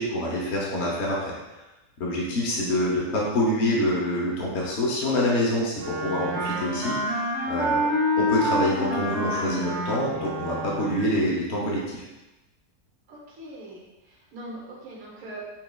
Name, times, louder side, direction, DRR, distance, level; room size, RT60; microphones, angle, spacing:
voice 1, 0.0-1.3 2.0-7.9 8.2-12.1, left 1 dB, 55° left, -4 dB, 0.8 m, -26 dB
Wind instrument woodwind instrument, 5.8-11.1, equal, 85° right, 1.4 m, -27 dB
voice 2, 13.1-15.4, right 1 dB, 65° right, -5 dB, 1.3 m, -42 dB
5.7 x 2.3 x 2.2 m, 1.0 s
omnidirectional pair, 1.7 m